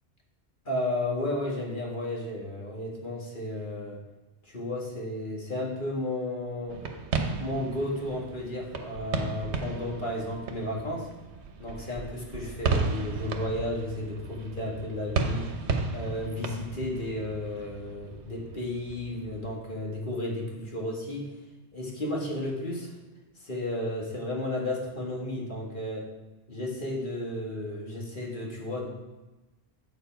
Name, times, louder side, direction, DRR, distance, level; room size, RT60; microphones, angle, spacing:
voice 1, 0.7-4.0 4.4-6.8 7.4-11.1 11.6-15.6 15.9-21.3 21.7-22.9 23.4-26.1 26.5-28.9, left 1 dB, 50° left, -2 dB, 1.9 m, -33 dB
sound 1, 6.7-19.6, right 4 dB, 80° right, 1.2 m, -34 dB
8.1 x 7.0 x 4.5 m, 1.1 s
omnidirectional pair, 1.1 m